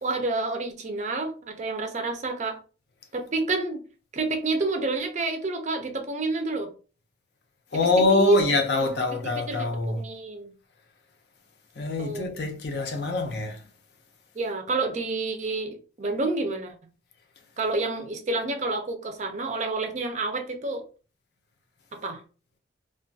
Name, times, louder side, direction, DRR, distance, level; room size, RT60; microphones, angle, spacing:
voice 1, 0.0-2.6 3.1-3.8 4.1-6.7 7.7-8.4 8.8-10.5 12.0-12.4 14.4-16.7 17.6-20.8 21.9-22.2, right 3 dB, 40° right, 0.4 m, -29 dB
voice 2, 7.7-10.0 11.8-13.6, left 3 dB, 55° left, 0.5 m, -25 dB
2.3 x 2.2 x 2.6 m
head